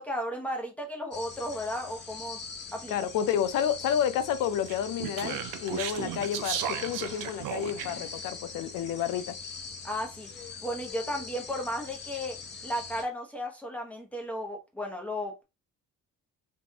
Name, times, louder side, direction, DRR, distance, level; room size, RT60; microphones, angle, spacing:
voice 1, 0.0-2.4 2.7-2.9 9.8-10.3 10.6-12.4 12.6-15.4, equal, 5° left, 0.9 m, -34 dB
sound 1, 1.1-13.0, left 5 dB, 35° left, 0.6 m, -43 dB
voice 2, 2.9-9.3, left 9 dB, 90° left, 0.6 m, -30 dB
Speech, 4.7-8.1, right 10 dB, 85° right, 0.6 m, -35 dB
3.6 x 2.4 x 2.8 m
cardioid pair, 145°, 32 cm